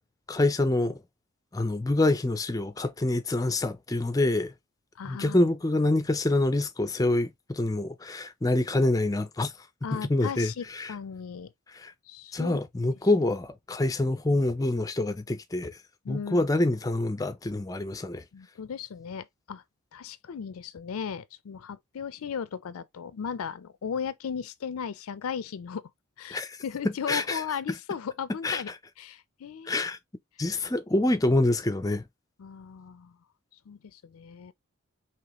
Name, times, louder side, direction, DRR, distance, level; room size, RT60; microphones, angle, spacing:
voice 1, 0.3-1.0 1.5-4.5 5.0-9.5 10.0-10.9 11.7-11.9 12.3-15.8 16.1-18.2 26.3-26.6 27.1-27.4 28.4-28.6 29.7-30.0 30.4-32.0, left 2 dB, 15° left, 0.4 m, -26 dB
voice 2, 5.0-5.4 9.8-11.5 12.1-12.6 16.0-16.5 18.3-19.6 19.9-25.8 26.2-28.7 29.0-29.8 32.4-33.1 33.7-34.5, left 7 dB, 85° left, 0.4 m, -36 dB
4.9 x 3.0 x 2.9 m
head